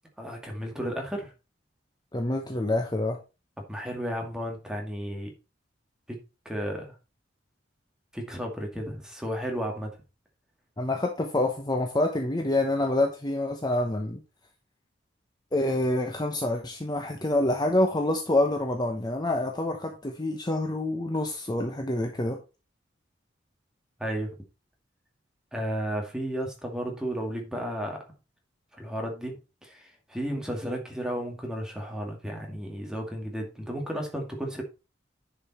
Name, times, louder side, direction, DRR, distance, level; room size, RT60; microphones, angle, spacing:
voice 1, 0.2-1.3 3.7-5.3 6.1-6.2 6.5-7.0 8.1-9.9 24.0-24.3 25.5-28.0 28.7-34.6, equal, 5° right, 1 dB, 2.2 m, -33 dB
voice 2, 2.1-3.2 10.8-14.2 15.5-22.4, left 1 dB, 20° left, 3 dB, 0.9 m, -27 dB
10.0 x 5.3 x 4.3 m, 0.30 s
head